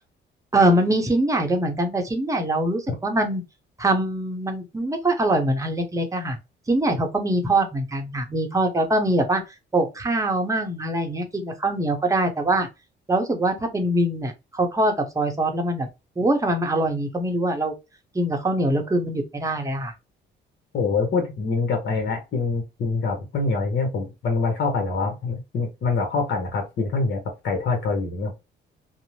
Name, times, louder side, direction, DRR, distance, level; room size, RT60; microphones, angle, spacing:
voice 1, 0.5-3.4 3.8-6.4 6.7-9.4 9.7-12.7 13.1-15.9 16.2-17.7 18.1-19.9, right 1 dB, 15° right, 0.8 m, -23 dB
voice 2, 20.7-28.3, left 4 dB, 60° left, 0.9 m, -25 dB
2.6 x 2.0 x 3.0 m
cardioid pair, 90°, 20 cm